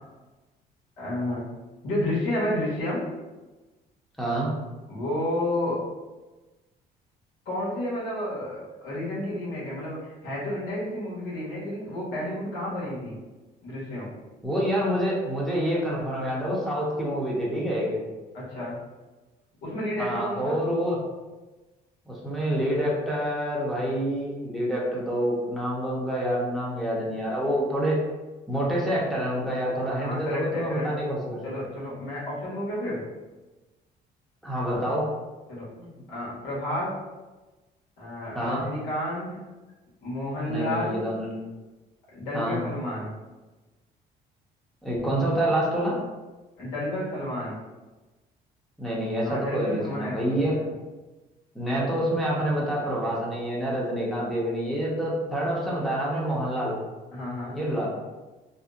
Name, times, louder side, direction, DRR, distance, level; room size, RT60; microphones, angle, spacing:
voice 1, 1.0-1.5 1.8-3.1 4.9-5.8 7.4-13.2 13.6-14.1 18.3-18.8 19.6-20.6 29.9-30.9 31.4-33.0 35.5-36.9 38.0-39.4 40.0-41.1 42.1-43.1 46.6-47.6 49.2-50.7 57.1-57.6, left 1 dB, 85° left, -6 dB, 1.1 m, -31 dB
voice 2, 4.2-4.5 14.4-18.0 20.0-21.0 22.1-28.0 28.5-31.4 34.4-35.1 38.3-38.6 40.5-41.3 42.3-42.6 44.8-46.0 48.8-50.6 51.5-56.8 57.5-57.9, equal, ahead, -5 dB, 0.7 m, -27 dB
2.6 x 2.0 x 2.3 m, 1.2 s
cardioid pair, 110°, 17 cm